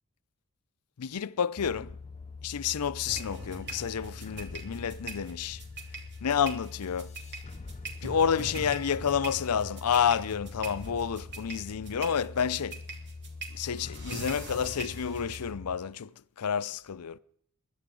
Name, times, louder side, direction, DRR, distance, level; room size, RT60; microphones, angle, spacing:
voice 1, 1.0-2.0 2.4-5.6 6.2-7.1 8.0-12.8 13.5-16.1 16.4-17.2, left 7 dB, 90° left, 0.6 m, -29 dB
sound 1, 1.6-15.8, left 4 dB, 30° left, 0.6 m, -44 dB
sound 2, 3.1-15.5, right 2 dB, 55° right, 3.1 m, -43 dB
23.0 x 12.0 x 3.8 m
head